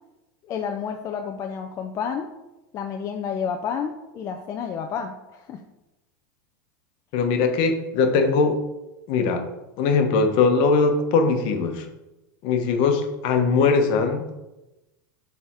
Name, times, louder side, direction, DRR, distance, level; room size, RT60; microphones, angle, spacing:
voice 1, 0.4-2.3 2.7-5.6, left 7 dB, 30° left, 4 dB, 0.5 m, -30 dB
voice 2, 7.1-8.6 9.1-9.4 9.8-11.8 12.4-14.2, left 4 dB, 50° left, 6 dB, 1.0 m, -20 dB
6.8 x 3.5 x 4.3 m, 0.99 s
supercardioid pair, 135°, 11 cm